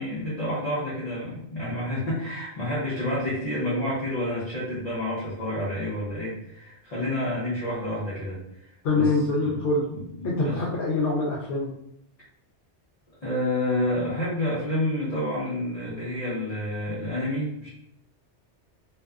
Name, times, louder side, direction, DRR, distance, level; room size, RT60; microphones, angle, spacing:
voice 1, 0.0-9.1 9.4-10.6 13.2-17.7, left 1 dB, 40° left, -9 dB, 0.7 m, -29 dB
voice 2, 8.8-9.8 10.2-11.7, left 3 dB, 70° left, -5 dB, 0.9 m, -24 dB
2.6 x 2.3 x 2.3 m, 0.74 s
omnidirectional pair, 1.2 m